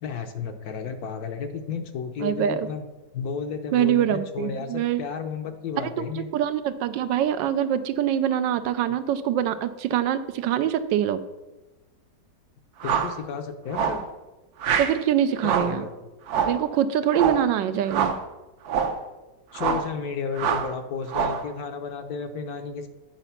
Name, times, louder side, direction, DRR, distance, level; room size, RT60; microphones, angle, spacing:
voice 1, 0.0-2.8 3.1-6.3 8.9-9.0 12.8-14.1 15.4-15.9 19.5-22.9, left 6 dB, 65° left, 7 dB, 1.0 m, -32 dB
voice 2, 2.2-2.7 3.7-5.0 5.8-11.2 14.8-15.9 16.4-18.1 19.7-19.8, right 10 dB, 80° right, 12 dB, 1.3 m, -24 dB
sound 1, 12.8-13.2 13.7-14.1 14.6-15.0 15.4-15.8 16.3-16.6 17.1-17.5 17.9-18.2 18.6-19.0 19.5-19.9 20.4-20.7 21.1-21.5, right 7 dB, 65° right, 1.1 m, -25 dB
9.0 x 5.0 x 5.7 m, 1.1 s
omnidirectional pair, 2.0 m